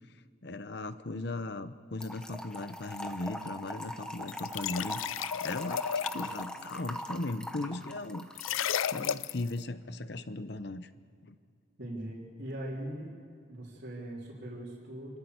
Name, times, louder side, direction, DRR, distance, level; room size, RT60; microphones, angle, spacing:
voice 1, 0.4-5.0 5.4-8.6 8.9-10.9 11.2-11.3, left 2 dB, 55° left, 12 dB, 0.8 m, -38 dB
Trickle dribble / Fill (with liquid), 2.0-9.1, equal, 5° left, 0.9 m, -41 dB
sound 1, 4.3-6.4 8.3-9.5, left 9 dB, 80° left, 0.4 m, -33 dB
voice 2, 11.8-13.1 13.5-15.2, right 1 dB, 55° right, -8 dB, 3.4 m, -40 dB
28.5 x 13.0 x 8.1 m, 2.3 s
head